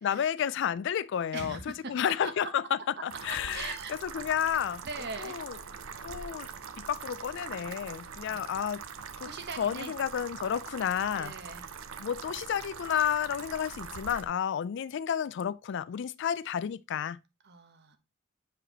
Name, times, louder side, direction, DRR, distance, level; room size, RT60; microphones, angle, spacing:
voice 1, 0.0-3.8 4.0-4.8 5.2-5.6 6.0-6.5 6.8-8.8 9.2-9.3 9.6-11.3 12.0-17.2, left 8 dB, 60° left, 0.3 m, -31 dB
voice 2, 1.3-2.3 3.5-3.9 4.8-5.4 8.3-8.6 9.2-9.9 11.2-11.7 17.4-18.0, right 4 dB, 55° right, 1.1 m, -41 dB
sound 1, 3.1-14.3, right 6 dB, 85° right, 0.7 m, -43 dB
8.2 x 4.9 x 2.9 m
head